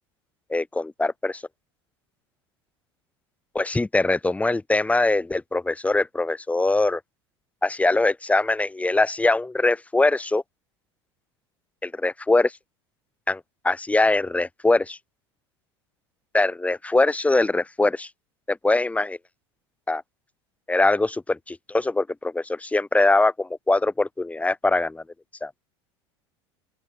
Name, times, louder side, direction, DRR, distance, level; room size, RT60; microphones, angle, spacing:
voice 1, 0.5-1.4 3.5-7.0 7.6-10.4 11.8-12.5 13.3-15.0 16.3-18.1 18.5-19.2 19.9-20.0 20.7-25.0 25.4-25.5, left 2 dB, 10° left, 1.6 m, -22 dB
open air
figure-of-eight pair, 75°, 14 cm